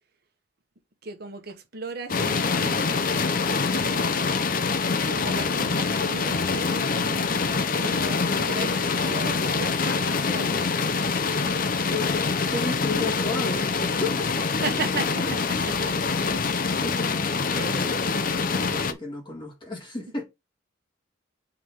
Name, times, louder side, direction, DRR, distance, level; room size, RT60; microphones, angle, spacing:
voice 1, 1.0-3.0 3.6-4.4 5.1-10.6 14.6-16.0 17.5-18.0, right 3 dB, 50° right, 1.3 m, -36 dB
sound 1, 2.1-18.9, left 4 dB, 45° left, 0.6 m, -25 dB
voice 2, 11.9-14.5 16.8-20.2, left 2 dB, 25° left, 1.9 m, -33 dB
5.2 x 3.9 x 5.9 m
head